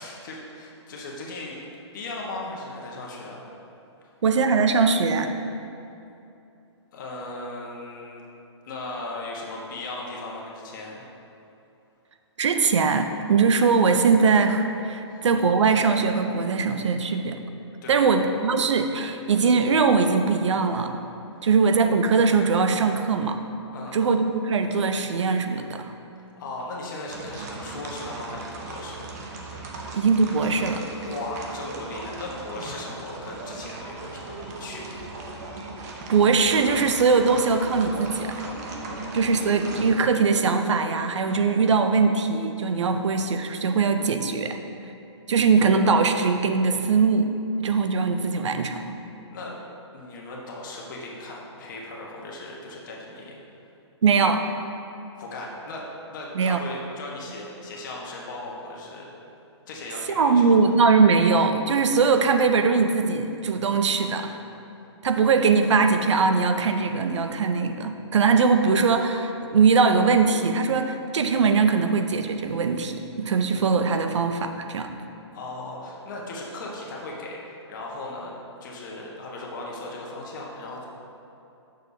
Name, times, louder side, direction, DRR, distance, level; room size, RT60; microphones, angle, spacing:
voice 1, 0.0-1.6 1.9-3.5 6.9-8.2 8.6-11.0 15.0-15.2 17.8-18.1 23.7-24.0 26.1-29.2 31.0-35.1 49.3-49.6 49.9-53.4 55.2-59.1 59.7-60.7 75.3-78.3 78.6-80.8, left 2 dB, 40° left, -3 dB, 1.3 m, -37 dB
voice 2, 4.2-5.3 12.4-17.4 17.9-20.9 21.4-23.4 23.9-25.9 29.9-30.8 36.1-38.3 39.1-44.6 45.3-47.3 47.6-48.8 54.0-54.5 56.3-56.6 60.2-64.3 65.0-74.9, right 5 dB, 80° right, 7 dB, 0.6 m, -21 dB
sound 1, 27.1-39.9, right 3 dB, 35° right, 0.7 m, -37 dB
8.0 x 6.5 x 2.7 m, 2.8 s
hypercardioid pair, 160°, 15 cm